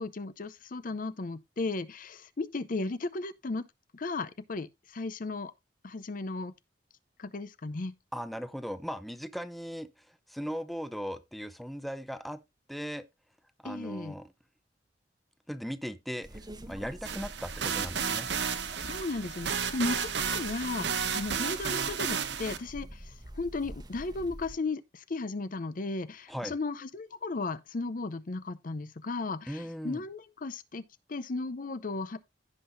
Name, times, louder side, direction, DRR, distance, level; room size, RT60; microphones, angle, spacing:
voice 1, 0.0-3.7 3.9-5.5 5.8-6.5 7.2-7.9 13.6-14.1 18.8-30.8 31.1-32.3, left 3 dB, 50° left, 0.6 m, -35 dB
voice 2, 8.1-12.4 12.7-13.0 13.6-14.3 15.5-18.3 26.3-26.6 29.5-30.0, equal, ahead, 0.6 m, -38 dB
sound 1, 16.2-24.5, right 1 dB, 25° right, 1.1 m, -46 dB
sound 2, 17.0-22.6, right 7 dB, 75° right, 1.0 m, -32 dB
16.0 x 5.7 x 2.6 m
head